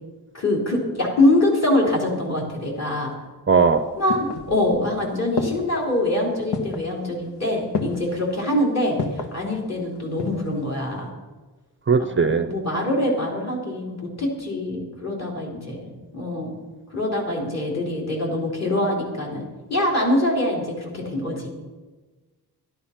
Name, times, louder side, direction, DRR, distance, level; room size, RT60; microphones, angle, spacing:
voice 1, 0.3-3.1 4.0-11.1 12.2-16.5 16.9-21.5, left 1 dB, 40° left, -2 dB, 3.6 m, -24 dB
voice 2, 3.5-3.8 11.9-12.5, right 5 dB, 30° right, 8 dB, 0.6 m, -18 dB
sound 1, 3.6-4.9 5.4-5.9 6.5-6.9 7.7-8.2 9.0-9.4 9.9-10.5 10.8-10.9, left 3 dB, 85° left, 1.4 m, -29 dB
12.5 x 12.0 x 5.8 m, 1.3 s
wide cardioid pair, 175°, 40 cm